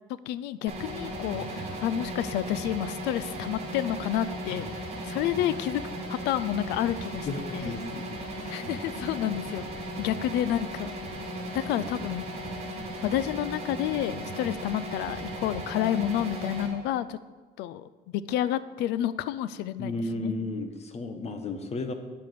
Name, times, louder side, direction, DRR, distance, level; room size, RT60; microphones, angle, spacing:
voice 1, 0.1-4.7 5.0-5.8 6.1-7.7 8.5-10.9 11.5-12.3 13.0-17.2 17.6-20.3, left 11 dB, 90° left, 16 dB, 0.5 m, -30 dB
sound 1, 0.7-16.7, right 1 dB, 40° right, 3.3 m, -36 dB
voice 2, 7.3-8.0 8.4-8.7 19.8-21.9, left 2 dB, 40° left, 7 dB, 1.4 m, -33 dB
10.5 x 7.7 x 6.9 m, 1.3 s
cardioid pair, 110°, 17 cm